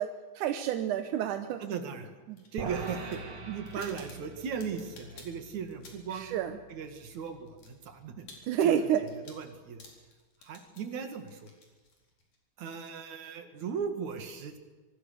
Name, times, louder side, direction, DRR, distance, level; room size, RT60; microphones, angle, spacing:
voice 1, 0.0-1.6 2.3-2.4 3.8-3.9 6.1-6.6 8.5-9.0, right 10 dB, 90° right, 8 dB, 2.5 m, -29 dB
voice 2, 1.6-2.1 2.5-3.2 3.5-6.4 6.7-8.3 8.6-8.9 9.1-9.8 10.4-11.5 12.6-14.6, right 6 dB, 70° right, 7 dB, 3.4 m, -38 dB
sound 1, 2.3-6.2 6.5-12.4, left 3 dB, 75° left, 5.7 m, -55 dB
sound 2, 2.6-9.0, right 4 dB, 50° right, 2.7 m, -45 dB
25.5 x 23.0 x 6.7 m, 1.2 s
omnidirectional pair, 3.4 m